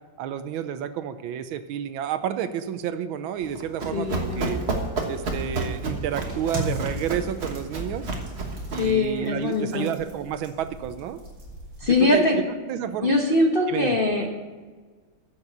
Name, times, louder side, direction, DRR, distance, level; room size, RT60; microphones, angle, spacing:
voice 1, 0.2-4.6 5.1-8.1 8.7-11.2 11.8-12.3 12.7-13.1 13.7-14.0, right 9 dB, 80° right, 11 dB, 1.4 m, -30 dB
Run, 3.4-9.0, right 2 dB, 35° right, 1.4 m, -31 dB
voice 2, 3.9-4.7 8.8-9.9 11.8-12.4 13.0-14.4, left 2 dB, 40° left, 0 dB, 0.8 m, -22 dB
sound 1, 6.3-12.1, right 1 dB, 60° right, 3.6 m, -38 dB
9.5 x 7.3 x 6.7 m, 1.4 s
omnidirectional pair, 2.3 m